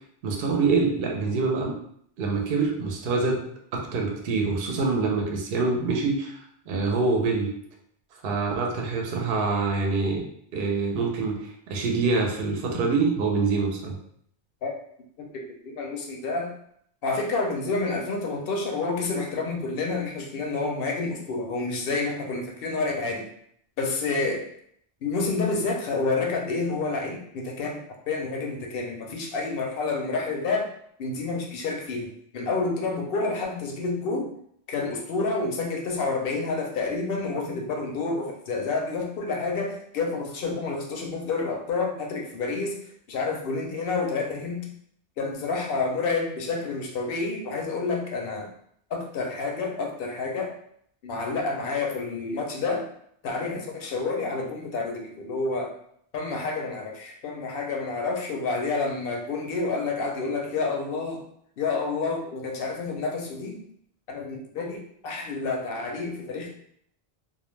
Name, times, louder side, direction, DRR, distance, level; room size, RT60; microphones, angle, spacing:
voice 1, 0.2-1.7 2.2-3.4 3.7-6.4 6.7-7.5 8.2-10.2 10.5-14.0, right 4 dB, 65° right, 1 dB, 0.7 m, -25 dB
voice 2, 15.2-16.5 17.0-23.3 23.8-24.5 25.0-27.8 28.1-30.6 31.0-34.3 34.7-42.8 43.1-44.7 45.2-48.5 48.9-50.5 51.0-52.9 53.2-55.7 56.1-61.2 61.6-63.6 64.1-66.5, left 3 dB, 65° left, 1 dB, 0.7 m, -29 dB
2.3 x 2.1 x 3.1 m, 0.67 s
omnidirectional pair, 1.1 m